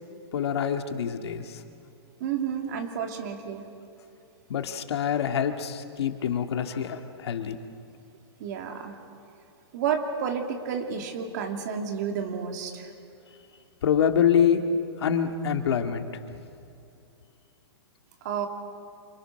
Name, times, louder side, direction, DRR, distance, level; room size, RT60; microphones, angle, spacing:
voice 1, 0.3-1.5 4.5-7.6 13.8-14.6 15.0-16.1, left 8 dB, 75° left, 6 dB, 2.0 m, -25 dB
voice 2, 2.2-3.6 8.4-9.0 9.7-12.9 18.2-18.5, right 7 dB, 40° right, 4 dB, 2.6 m, -31 dB
28.0 x 26.0 x 6.6 m, 2.6 s
supercardioid pair, 175°, 14 cm